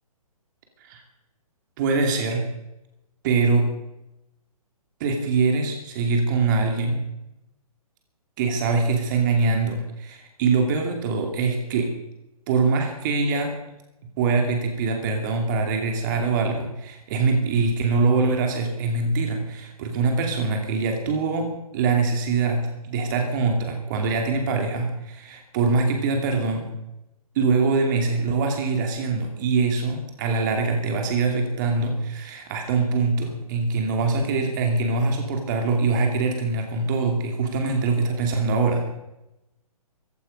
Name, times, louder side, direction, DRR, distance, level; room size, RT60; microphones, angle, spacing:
voice 1, 1.8-2.4 3.2-3.7 5.0-7.0 8.4-11.9 12.5-13.6 14.2-26.7 27.3-38.9, right 4 dB, 30° right, 3 dB, 2.6 m, -23 dB
15.5 x 14.5 x 5.4 m, 0.91 s
figure-of-eight pair, 130°, 19 cm